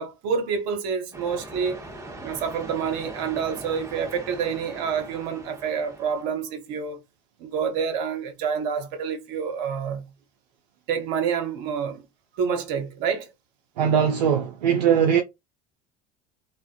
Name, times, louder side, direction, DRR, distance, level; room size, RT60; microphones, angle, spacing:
voice 1, 0.0-1.8 2.2-7.0 7.4-10.0 10.9-12.1 12.4-13.3, right 6 dB, 60° right, 0.8 m, -28 dB
sound 1, 1.1-6.2, right 1 dB, 15° right, 0.9 m, -41 dB
voice 2, 13.8-15.2, right 8 dB, 80° right, 0.4 m, -20 dB
2.4 x 2.2 x 2.5 m
hypercardioid pair, 70°, 21 cm